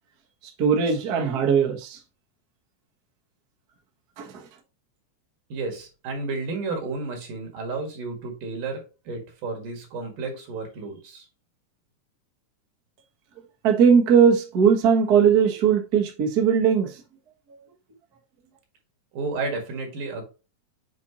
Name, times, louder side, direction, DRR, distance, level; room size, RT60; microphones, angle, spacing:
voice 1, 0.6-2.0 4.2-4.3 13.6-16.9, right 7 dB, 55° right, 1.0 m, -19 dB
voice 2, 5.5-11.3 19.1-20.2, right 3 dB, 75° right, 3.4 m, -32 dB
7.4 x 4.3 x 2.9 m
omnidirectional pair, 3.7 m